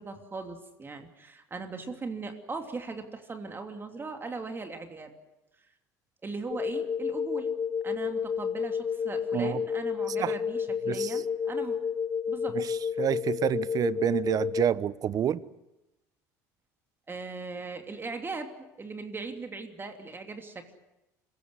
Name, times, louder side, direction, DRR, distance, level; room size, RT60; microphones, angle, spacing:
voice 1, 0.0-5.1 5.6-5.7 6.2-7.5 7.8-11.8 12.3-12.6 17.1-20.8, right 3 dB, 25° right, 3.0 m, -39 dB
sound 1, 6.5-14.7, left 6 dB, 35° left, 1.4 m, -31 dB
voice 2, 10.9-11.2 12.5-15.4, right 9 dB, 45° right, 1.0 m, -28 dB
26.0 x 16.0 x 9.8 m
supercardioid pair, 80°, 9 cm